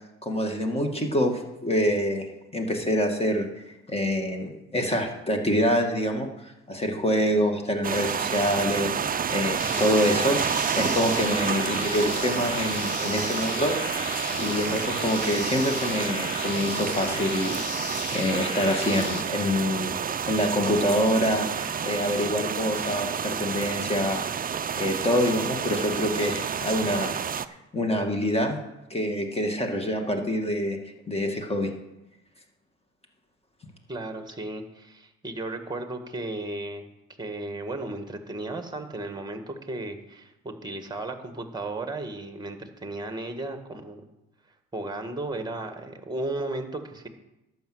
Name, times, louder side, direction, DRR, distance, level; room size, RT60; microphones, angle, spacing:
voice 1, 0.2-2.3 2.5-3.5 3.9-8.9 9.3-13.8 14.4-20.0 20.3-24.2 24.8-27.1 27.7-28.6 28.9-30.8 31.1-31.7, equal, 20° left, 4 dB, 2.0 m, -26 dB
sound 1, 7.8-27.5, right 7 dB, 30° right, 0.5 m, -29 dB
sound 2, 9.6-19.2, left 7 dB, 80° left, 1.1 m, -36 dB
voice 2, 33.9-36.8 37.2-44.0 44.7-47.1, right 2 dB, 15° right, 6 dB, 1.6 m, -35 dB
11.5 x 5.7 x 7.9 m, 0.92 s
cardioid pair, 90°, 30 cm